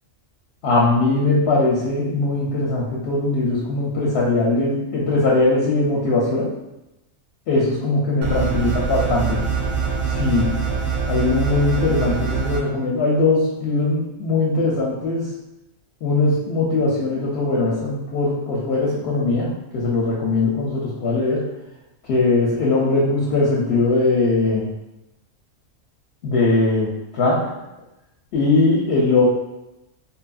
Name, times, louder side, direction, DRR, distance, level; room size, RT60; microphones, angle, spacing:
voice 1, 0.6-6.5 7.5-9.4 10.1-10.5 11.1-15.3 16.0-21.4 22.1-24.7 26.2-27.5 28.3-29.3, left 2 dB, 65° left, -5 dB, 0.8 m, -20 dB
sound 1, 8.2-12.6, right 6 dB, 70° right, 0.9 m, -24 dB
3.0 x 2.4 x 2.3 m, 0.94 s
omnidirectional pair, 1.4 m